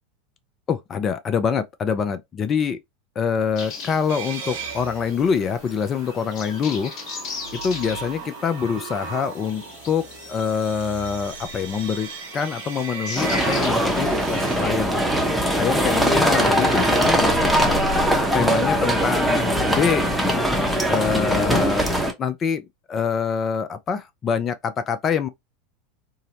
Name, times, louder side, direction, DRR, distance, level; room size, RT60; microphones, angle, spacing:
voice 1, 0.7-2.8 3.2-6.9 7.5-10.0 10.3-12.1 12.3-15.0 15.5-17.8 18.3-20.1 20.8-21.9 22.2-25.3, left 6 dB, 30° left, 0.4 m, -25 dB
sound 1, 3.6-14.1, left 5 dB, 45° left, 0.9 m, -39 dB
sound 2, 4.1-21.9, right 3 dB, 65° right, 0.6 m, -37 dB
sound 3, 13.2-22.1, equal, ahead, 0.7 m, -21 dB
2.7 x 2.0 x 2.7 m
figure-of-eight pair, 85°, 0 cm